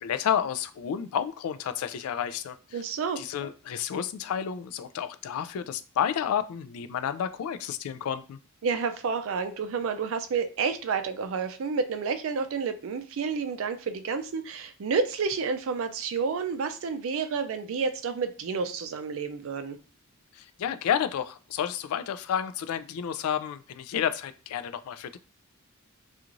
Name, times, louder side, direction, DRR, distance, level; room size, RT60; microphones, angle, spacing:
voice 1, 0.0-2.8 3.2-8.4 20.3-25.2, left 8 dB, 90° left, 12 dB, 0.3 m, -31 dB
voice 2, 2.7-3.2 8.6-19.8, right 5 dB, 65° right, 9 dB, 0.4 m, -30 dB
2.5 x 2.4 x 2.9 m, 0.37 s
head